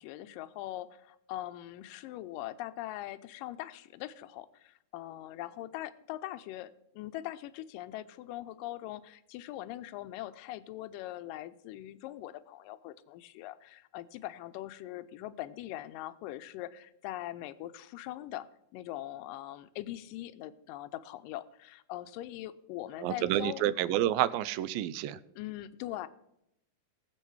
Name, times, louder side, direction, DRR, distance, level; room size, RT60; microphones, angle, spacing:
voice 1, 0.0-23.6 25.4-26.1, left 14 dB, 80° left, 13 dB, 2.2 m, -42 dB
voice 2, 23.0-25.2, right 12 dB, 85° right, 15 dB, 2.4 m, -29 dB
20.0 x 7.5 x 4.7 m, 0.80 s
omnidirectional pair, 4.1 m